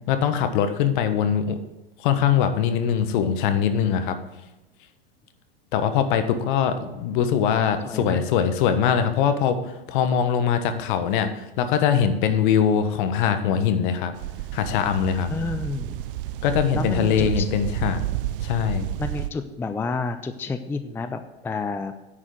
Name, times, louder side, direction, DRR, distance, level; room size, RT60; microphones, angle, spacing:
voice 1, 0.1-1.6 2.0-4.2 5.7-14.1 14.5-15.3 16.4-18.0 18.4-18.9, left 8 dB, 55° left, 8 dB, 1.3 m, -22 dB
voice 2, 7.8-8.2 15.3-16.0 16.7-17.5 19.0-21.9, left 4 dB, 10° left, 9 dB, 0.5 m, -30 dB
sound 1, 14.1-19.3, right 13 dB, 65° right, 0.6 m, -31 dB
9.9 x 4.9 x 7.7 m, 1.0 s
hypercardioid pair, 100°, 30 cm